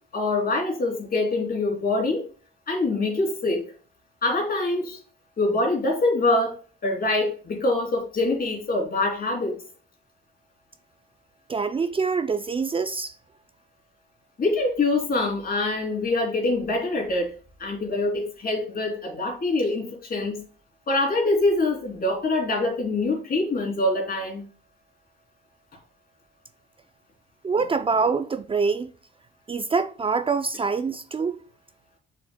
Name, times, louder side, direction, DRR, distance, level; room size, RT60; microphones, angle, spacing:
voice 1, 0.1-2.2 2.7-3.7 4.2-5.0 5.4-6.6 6.8-9.6 14.4-17.3 17.6-20.4 20.9-24.5, left 2 dB, 50° left, 3.0 m, -24 dB
voice 2, 11.5-13.1 27.4-28.9 29.5-31.4, right 5 dB, 25° right, 0.4 m, -25 dB
6.8 x 6.4 x 2.2 m
cardioid pair, 90°, 20 cm